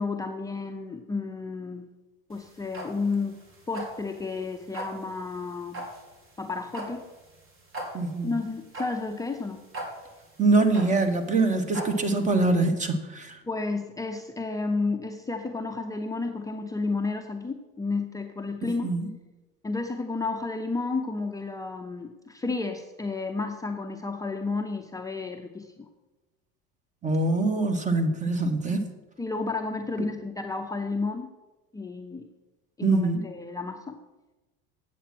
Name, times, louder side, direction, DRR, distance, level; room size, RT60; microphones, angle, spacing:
voice 1, 0.0-1.9 2.3-3.4 3.7-5.9 6.4-7.0 8.2-9.6 12.0-12.1 13.5-18.9 19.6-25.9 29.2-31.3 31.7-32.2 32.8-34.0, left 3 dB, 10° left, 3 dB, 0.6 m, -31 dB
sound 1, 2.3-12.3, right 1 dB, 45° right, 2.6 m, -40 dB
voice 2, 7.9-8.3 10.4-13.4 18.6-19.1 27.0-28.8 32.8-33.3, right 3 dB, 25° right, 8 dB, 1.2 m, -24 dB
8.9 x 7.5 x 5.9 m, 1.1 s
supercardioid pair, 115°, 30 cm